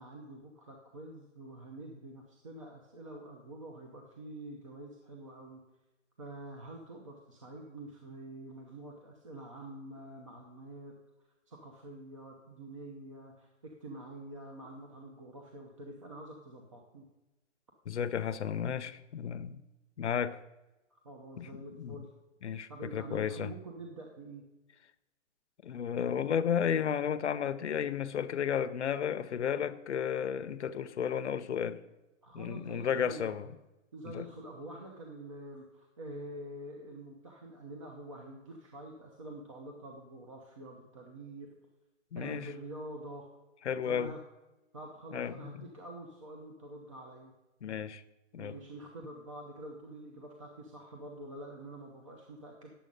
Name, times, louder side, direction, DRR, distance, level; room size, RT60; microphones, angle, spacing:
voice 1, 0.0-5.6 6.2-10.9 11.5-17.0 20.0-20.1 20.9-22.1 22.7-24.4 32.2-33.4 33.9-41.5 42.2-43.3 43.8-44.2 44.7-47.3 48.4-52.7, right 1 dB, 25° right, 1 dB, 0.8 m, -46 dB
voice 2, 17.9-19.6 20.0-20.4 21.4-22.0 22.4-23.5 25.6-31.8 32.3-33.5 34.0-34.3 42.1-42.5 43.6-44.1 45.1-45.6 47.6-48.0 48.3-48.6, left 8 dB, 65° left, 11 dB, 0.7 m, -33 dB
10.5 x 7.4 x 5.2 m, 1.0 s
hypercardioid pair, 175°, 37 cm